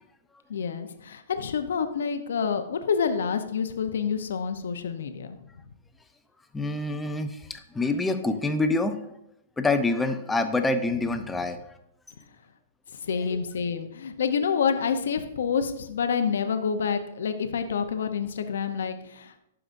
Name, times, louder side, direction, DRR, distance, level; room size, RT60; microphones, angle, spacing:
voice 1, 0.5-5.4 12.9-19.4, left 6 dB, 80° left, 8 dB, 0.7 m, -28 dB
voice 2, 6.5-9.0 9.6-11.6 13.3-13.4, left 2 dB, 10° left, 8 dB, 0.6 m, -26 dB
12.5 x 4.9 x 2.6 m, 0.82 s
hypercardioid pair, 135°, 0 cm